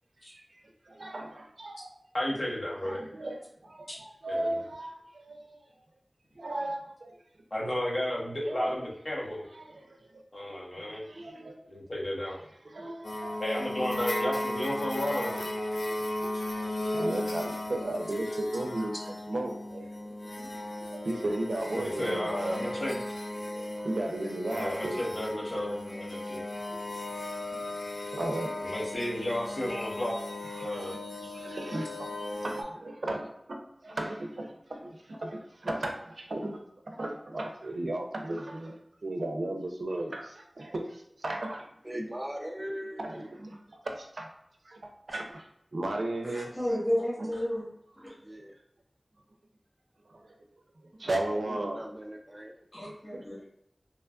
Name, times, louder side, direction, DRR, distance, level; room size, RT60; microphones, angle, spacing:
voice 1, 0.9-2.0 2.8-5.6 6.4-7.2 8.4-8.7 9.5-10.2 10.9-11.6 12.6-13.3 13.8-14.4 15.1-18.9 19.3-19.9 20.6-22.7 23.5-25.0 26.7-26.8 27.9-28.6 30.5-30.9 31.2-32.1 32.4-36.6 36.9-41.7 43.0-43.6 43.8-44.3 44.6-45.5 45.7-46.5 47.2-47.3 50.1-50.4 51.0-51.8 53.1-53.4, right 1 dB, 90° right, 2 dB, 0.5 m, -36 dB
voice 2, 2.1-3.0 3.9-4.0 4.3-4.6 7.5-9.4 10.3-11.0 11.7-12.4 13.4-15.4 20.0-20.1 20.4-20.7 21.7-23.0 24.5-26.4 28.6-30.2 30.6-31.0, left 1 dB, 55° left, -4 dB, 0.9 m, -33 dB
sound 1, 13.0-32.6, left 1 dB, 80° left, 0.4 m, -36 dB
voice 3, 41.8-43.3 48.2-48.5 51.2-52.5, equal, 20° right, 1 dB, 0.4 m, -40 dB
voice 4, 46.3-47.7 52.7-53.3, equal, 25° left, -7 dB, 1.1 m, -31 dB
3.0 x 2.3 x 2.3 m, 0.76 s
wide cardioid pair, 65°, 0 cm